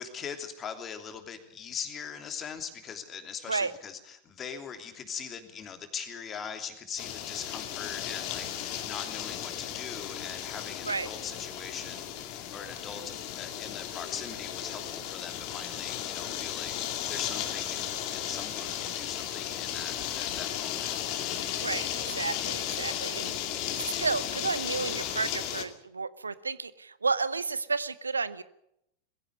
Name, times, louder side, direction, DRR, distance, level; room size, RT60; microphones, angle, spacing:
voice 1, 0.0-17.8 18.1-21.0, left 7 dB, 25° left, 7 dB, 3.1 m, -41 dB
sound 1, 7.0-25.6, left 10 dB, 45° left, 2.3 m, -35 dB
voice 2, 21.6-28.4, right 4 dB, 75° right, 17 dB, 0.8 m, -32 dB
21.5 x 16.0 x 8.2 m, 0.78 s
figure-of-eight pair, 90°, 0 cm